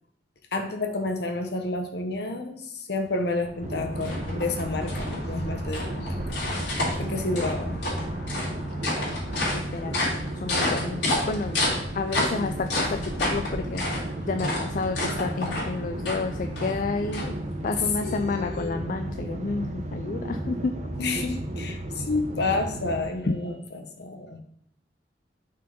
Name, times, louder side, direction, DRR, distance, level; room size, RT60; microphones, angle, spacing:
voice 1, 0.5-6.4 7.0-7.8 18.0-18.7 21.0-24.4, left 3 dB, 65° left, 6 dB, 1.0 m, -30 dB
sound 1, 3.3-17.8, left 1 dB, 80° left, 3.3 m, -31 dB
sound 2, 3.6-23.0, right 1 dB, 40° right, 0.8 m, -34 dB
voice 2, 9.5-10.0 10.4-11.6 11.9-13.8 14.3-17.3 17.6-20.9, left 4 dB, 50° left, 6 dB, 0.4 m, -30 dB
6.4 x 4.6 x 5.2 m, 0.70 s
head